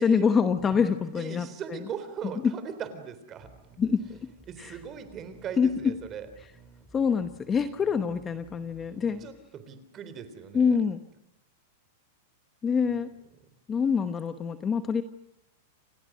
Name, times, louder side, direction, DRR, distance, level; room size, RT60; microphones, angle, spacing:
voice 1, 0.0-1.5 2.4-2.5 3.8-4.3 4.6-4.7 5.6-5.9 6.9-9.2 10.5-11.0 12.6-13.1 13.7-15.0, left 6 dB, 15° left, 10 dB, 1.0 m, -25 dB
Drum, 0.7-2.9, left 9 dB, 60° left, 3.4 m, -53 dB
voice 2, 1.2-3.5 4.5-6.3 9.2-10.8 12.9-13.0, right 7 dB, 25° right, 11 dB, 3.7 m, -39 dB
sound 1, 3.4-9.3, right 4 dB, 5° right, 5.7 m, -55 dB
29.5 x 27.5 x 6.2 m, 0.84 s
supercardioid pair, 160°, 0 cm